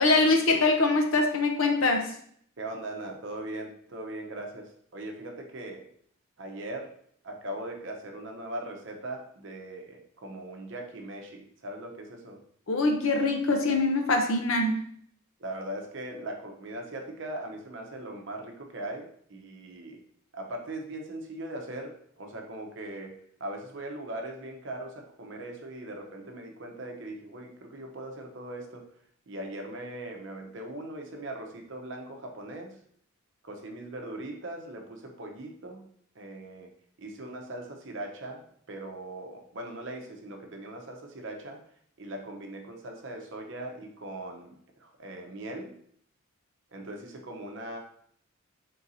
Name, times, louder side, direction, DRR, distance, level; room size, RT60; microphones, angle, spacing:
voice 1, 0.0-2.1 12.7-14.8, left 2 dB, 70° left, 4 dB, 0.7 m, -23 dB
voice 2, 2.6-5.8 6.4-7.0 7.2-12.4 15.4-20.0 20.3-28.9 29.3-32.8 33.4-35.9 36.1-36.7 37.0-41.6 42.0-45.8 46.7-47.8, right 1 dB, 60° right, 2 dB, 0.7 m, -40 dB
3.8 x 2.6 x 4.1 m, 0.63 s
head